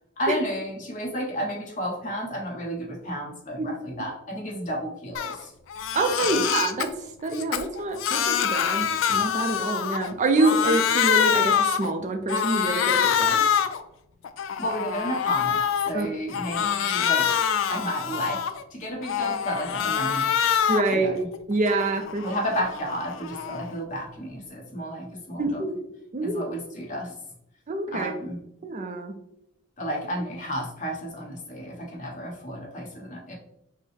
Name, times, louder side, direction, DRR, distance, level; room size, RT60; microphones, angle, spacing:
voice 1, 0.2-5.5 6.2-6.4 14.6-15.6 15.9-17.3 17.7-20.3 20.9-21.3 22.2-25.7 26.2-27.1 27.9-28.4 29.8-33.3, equal, 40° left, -2 dB, 1.1 m, -32 dB
Crying sobbing, 5.1-5.4 5.7-6.9 7.3-10.1 10.4-11.9 12.3-13.8 14.2-15.9 16.3-18.6 19.0-21.0 21.3-23.7, left 8 dB, 75° left, 0.4 m, -25 dB
voice 2, 5.9-6.9 7.2-13.4 15.9-16.1 20.7-21.2 21.5-22.3 25.4-25.7 26.1-26.4 27.7-28.1 28.6-29.1, right 2 dB, 40° right, 5 dB, 0.4 m, -26 dB
5.4 x 2.1 x 3.3 m, 0.79 s
head